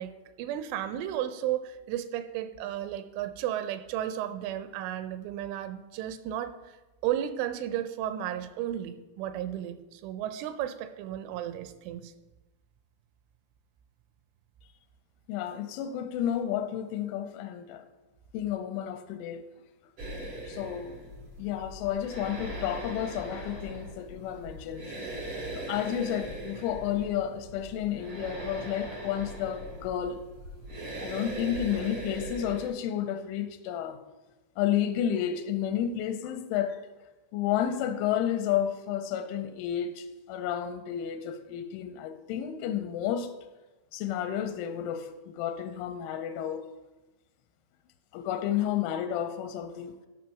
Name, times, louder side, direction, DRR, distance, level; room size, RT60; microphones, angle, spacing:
voice 1, 0.0-6.8 7.0-12.1, right 11 dB, 85° right, 3.0 m, -34 dB
voice 2, 15.3-17.8 18.3-19.4 20.5-21.0 21.4-24.9 25.5-30.2 31.0-34.0 34.6-36.8 37.3-43.3 43.9-46.6 48.1-49.9, left 10 dB, 85° left, 3.0 m, -31 dB
sound 1, 20.0-32.7, right 1 dB, 70° right, 1.3 m, -40 dB
13.0 x 5.3 x 5.8 m
omnidirectional pair, 5.6 m